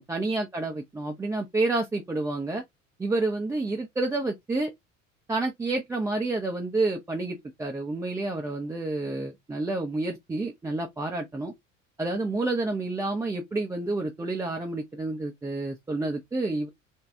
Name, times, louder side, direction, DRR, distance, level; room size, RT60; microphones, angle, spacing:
voice 1, 0.0-2.6 3.0-4.7 5.3-11.5 12.0-16.7, right 2 dB, 10° right, 0.4 m, -29 dB
3.4 x 2.3 x 2.7 m
figure-of-eight pair, 65°, 39 cm